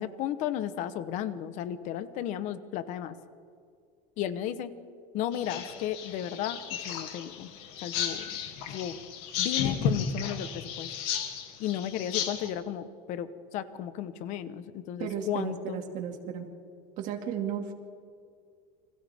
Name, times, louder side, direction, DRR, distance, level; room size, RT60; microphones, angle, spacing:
voice 1, 0.0-3.1 4.2-4.7 5.1-7.5 7.8-8.3 8.7-9.0 9.4-10.9 11.6-15.8, left 10 dB, 40° left, 12 dB, 1.1 m, -34 dB
sound 1, 5.3-12.5, left 7 dB, 55° left, 2.6 m, -33 dB
voice 2, 15.0-16.5 17.0-17.7, right 8 dB, 40° right, 3 dB, 2.4 m, -34 dB
29.5 x 25.0 x 3.6 m, 2.3 s
cardioid pair, 180°, 19 cm